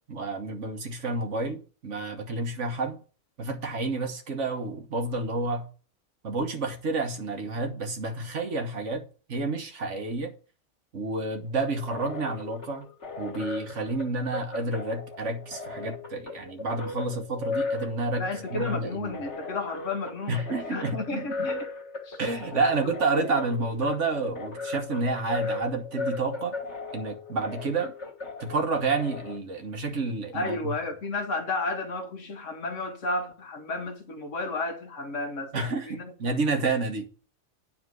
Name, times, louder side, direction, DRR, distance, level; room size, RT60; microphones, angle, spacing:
voice 1, 0.1-3.0 3.4-5.7 6.2-9.0 9.3-10.3 10.9-12.9 13.2-19.2 20.3-21.3 22.2-26.6 26.9-27.9 28.4-30.7 35.5-37.1, right 3 dB, 75° right, 1.6 m, -30 dB
sound 1, 11.6-29.4, left 3 dB, 70° left, 1.9 m, -37 dB
voice 2, 18.2-21.7 22.0-22.2 22.5-23.3 30.3-36.1, left 2 dB, 85° left, 1.6 m, -33 dB
9.8 x 4.3 x 6.3 m
omnidirectional pair, 1.2 m